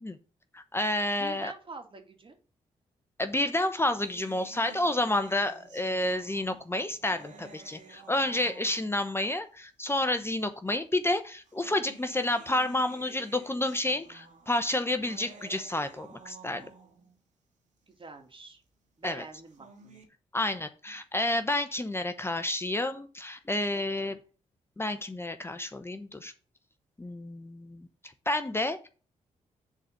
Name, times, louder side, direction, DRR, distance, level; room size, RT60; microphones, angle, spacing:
voice 1, 0.5-1.5 3.2-16.7 19.0-19.3 20.3-24.2 24.8-26.3 27.0-27.9 28.3-28.9, left 1 dB, 20° left, 9 dB, 0.8 m, -30 dB
voice 2, 1.2-2.4 17.9-18.6 19.0-20.0 23.7-24.1, right 3 dB, 40° right, 4 dB, 2.4 m, -46 dB
sound 1, 4.0-9.1 10.0-10.1 11.2-17.1 19.3-20.0, right 5 dB, 65° right, 2.5 m, -53 dB
7.4 x 4.1 x 6.5 m, 0.37 s
cardioid pair, 60°, 14 cm